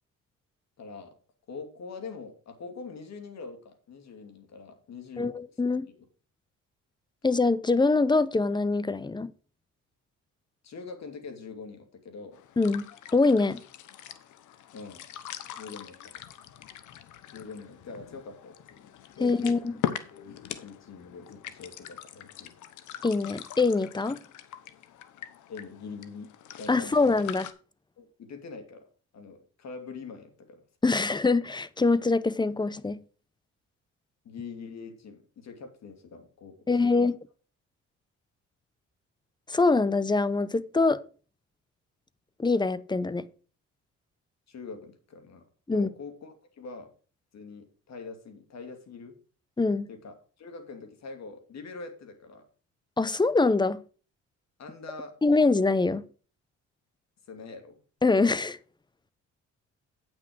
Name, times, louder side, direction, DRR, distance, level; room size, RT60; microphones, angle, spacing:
voice 1, 0.8-1.1 1.5-5.3 6.0-6.1 10.6-12.4 14.7-15.1 15.6-16.1 17.3-19.5 20.1-22.5 25.5-27.0 28.0-28.9 29.1-30.9 34.2-37.0 44.5-46.9 47.3-49.1 49.9-52.5 54.6-55.2 57.3-57.8, left 4 dB, 60° left, 2.7 m, -44 dB
voice 2, 5.2-5.9 7.2-9.3 12.6-12.9 13.1-13.6 19.2-19.7 23.0-24.2 26.7-27.5 30.8-33.0 36.7-37.1 39.5-41.0 42.4-43.2 45.7-45.9 49.6-49.9 53.0-53.8 55.2-56.0 58.0-58.6, left 3 dB, 15° left, 0.7 m, -24 dB
sound 1, 12.3-27.5, left 11 dB, 80° left, 1.1 m, -42 dB
8.9 x 6.2 x 6.1 m
cardioid pair, 90°, 30 cm